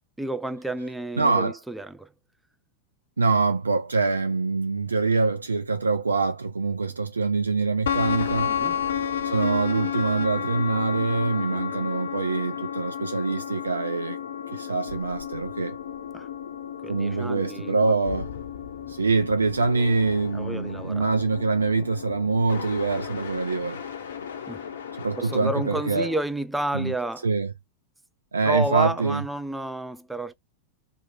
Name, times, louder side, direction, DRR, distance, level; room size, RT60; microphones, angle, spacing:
voice 1, 0.2-2.1 8.5-8.8 11.5-11.6 16.1-16.3 16.8-18.0 20.3-21.1 24.5-24.7 25.2-27.3 28.4-30.3, right 1 dB, 5° right, 0.4 m, -30 dB
voice 2, 1.2-1.6 3.2-8.5 9.2-14.2 14.5-15.8 16.9-18.3 18.9-23.8 25.0-26.1 26.7-26.9 27.2-27.5 28.3-29.2, right 4 dB, 75° right, 0.3 m, -24 dB
sound 1, 7.9-26.2, left 8 dB, 65° left, 0.7 m, -32 dB
3.0 x 2.3 x 3.6 m
figure-of-eight pair, 90°, 0 cm